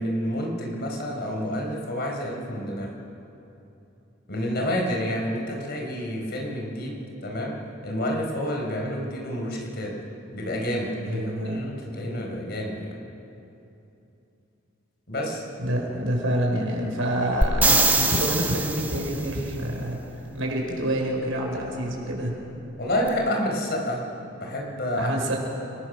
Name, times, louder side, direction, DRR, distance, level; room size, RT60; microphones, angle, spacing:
voice 1, 0.0-2.9 4.3-7.6 7.8-9.9 10.3-12.9 15.1-15.4 22.8-24.0 24.4-25.4, equal, 50° left, 0 dB, 4.4 m, -29 dB
voice 2, 11.1-11.6 15.6-20.0 20.3-22.4 25.0-25.4, right 1 dB, 80° right, 0 dB, 5.2 m, -27 dB
sound 1, 17.4-19.3 23.1-23.2, right 2 dB, 10° right, 1.1 m, -22 dB
30.0 x 20.0 x 6.5 m, 2.8 s
head